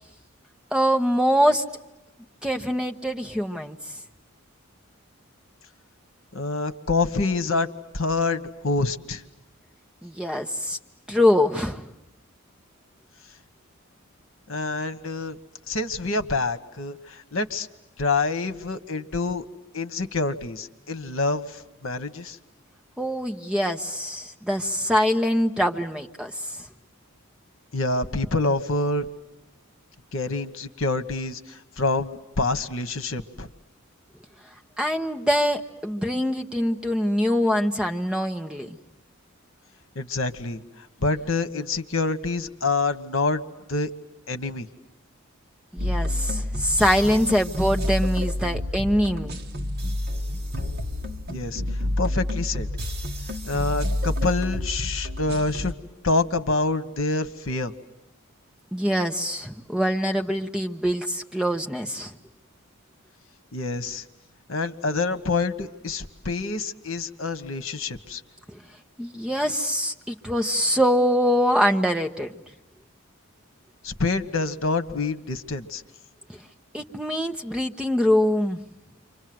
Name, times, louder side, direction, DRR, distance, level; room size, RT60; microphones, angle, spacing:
voice 1, 0.7-1.6 2.4-3.8 10.0-10.8 11.1-11.9 23.0-26.3 34.8-38.8 45.7-49.4 58.7-62.1 68.5-68.6 69.0-72.3 76.3-76.4 76.7-78.6, equal, 5° right, 4 dB, 1.1 m, -24 dB
voice 2, 6.3-7.7 7.9-9.2 14.5-15.4 15.7-17.7 18.0-19.4 19.7-22.4 27.7-29.1 30.1-33.5 39.9-40.6 41.0-43.4 43.7-43.9 44.3-44.7 51.3-51.6 52.0-52.7 53.5-55.7 56.0-57.7 63.5-64.0 64.5-68.2 73.8-75.8, left 3 dB, 65° left, 10 dB, 1.3 m, -26 dB
sound 1, 45.8-55.7, left 1 dB, 45° right, 1.5 m, -29 dB
29.5 x 25.5 x 7.8 m, 0.93 s
head